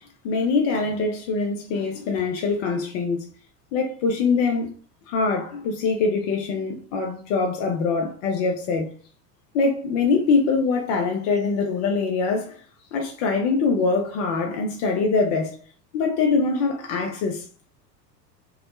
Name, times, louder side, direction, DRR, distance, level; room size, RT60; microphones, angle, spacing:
voice 1, 0.2-3.3 3.7-4.7 5.1-8.9 9.5-12.6 12.9-15.5 15.9-17.4, left 4 dB, 30° left, 0.3 m, -23 dB
4.4 x 2.1 x 3.0 m
figure-of-eight pair, 80°, 49 cm